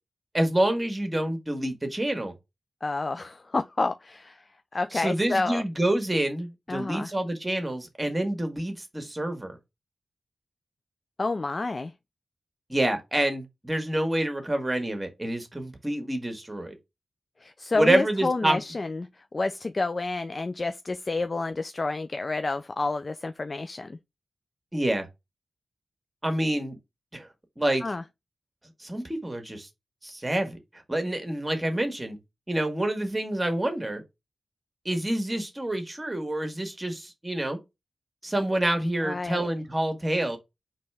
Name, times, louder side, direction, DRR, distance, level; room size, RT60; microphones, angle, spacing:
voice 1, 0.3-2.3 4.9-9.6 12.7-16.8 17.7-18.6 24.7-25.1 26.2-26.8 27.1-27.3 27.6-27.8 28.8-29.7 30.0-30.6 30.9-32.2 32.5-34.0 34.8-37.6 38.2-40.4, right 1 dB, 25° right, 1.5 m, -27 dB
voice 2, 2.8-4.4 4.7-5.6 6.7-7.1 11.2-11.9 17.4-24.0 27.8-28.0 39.0-39.5, left 3 dB, 45° left, 0.3 m, -29 dB
4.2 x 3.3 x 3.4 m
cardioid pair, 40°, 0 cm